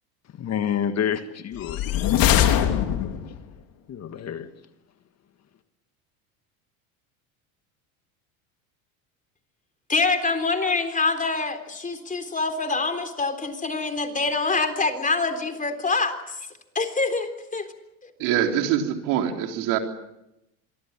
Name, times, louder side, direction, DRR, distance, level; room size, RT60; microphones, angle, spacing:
voice 1, 0.4-1.8 3.9-4.5, left 8 dB, 35° left, 10 dB, 1.7 m, -28 dB
sound 1, 1.6-3.4, left 10 dB, 55° left, 3.3 m, -21 dB
voice 2, 9.9-16.4 16.8-17.7, left 3 dB, 20° left, 7 dB, 3.8 m, -25 dB
voice 3, 18.2-19.8, right 10 dB, 65° right, 4 dB, 3.8 m, -24 dB
26.5 x 23.0 x 7.5 m, 0.88 s
supercardioid pair, 95°, 42 cm